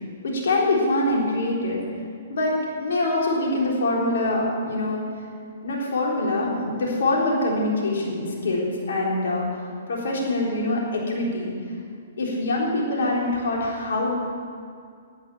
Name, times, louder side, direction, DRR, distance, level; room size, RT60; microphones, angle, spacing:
voice 1, 0.2-1.8 2.3-5.0 5.6-9.5 9.9-11.5 12.2-14.1, left 2 dB, 70° left, -3 dB, 3.9 m, -24 dB
12.5 x 9.8 x 7.1 m, 2.2 s
hypercardioid pair, 125°, 0 cm